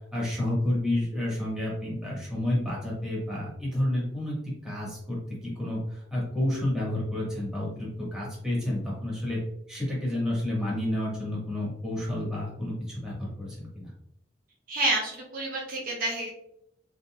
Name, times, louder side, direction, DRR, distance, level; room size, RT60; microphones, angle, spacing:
voice 1, 0.1-4.3 4.6-9.4 9.7-13.9, left 1 dB, 5° right, -6 dB, 1.4 m, -30 dB
voice 2, 14.7-16.3, right 2 dB, 50° right, -2 dB, 0.8 m, -29 dB
3.8 x 3.7 x 2.3 m, 0.78 s
head